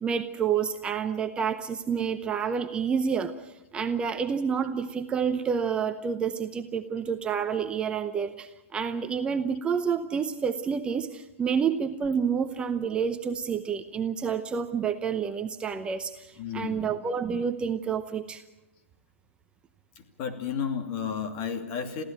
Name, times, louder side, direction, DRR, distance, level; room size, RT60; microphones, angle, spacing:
voice 1, 0.0-18.4, right 6 dB, 15° right, 8 dB, 0.8 m, -29 dB
voice 2, 16.4-17.0 20.0-22.0, left 7 dB, 35° left, 6 dB, 2.6 m, -33 dB
23.0 x 15.5 x 8.9 m, 0.95 s
hypercardioid pair, 145°, 7 cm